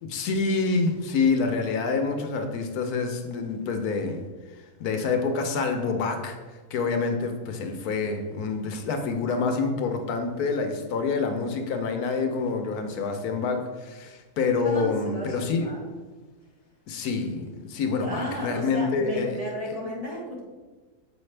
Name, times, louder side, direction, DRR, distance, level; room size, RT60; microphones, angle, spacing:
voice 1, 0.0-4.2 4.8-6.4 6.7-15.6 16.9-19.4 19.7-19.8, left 4 dB, 75° left, 5 dB, 1.2 m, -27 dB
voice 2, 14.5-15.8 18.0-20.4, right 1 dB, 30° right, -4 dB, 0.9 m, -33 dB
7.2 x 4.9 x 3.2 m, 1.3 s
omnidirectional pair, 1.7 m